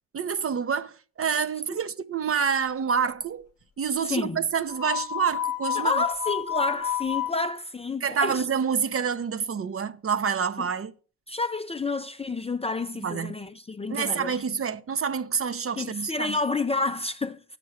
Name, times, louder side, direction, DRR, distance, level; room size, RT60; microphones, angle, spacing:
voice 1, 0.1-3.5 3.8-6.0 8.0-10.9 13.0-13.4 13.9-16.4, right 6 dB, 35° right, 0.7 m, -27 dB
voice 2, 4.1-4.4 5.8-8.4 10.6-10.7 11.3-14.4 15.8-17.4, left 3 dB, 15° left, 0.5 m, -29 dB
sound 1, 4.7-7.3, left 11 dB, 35° left, 1.0 m, -30 dB
8.4 x 6.7 x 6.2 m
supercardioid pair, 75°, 40 cm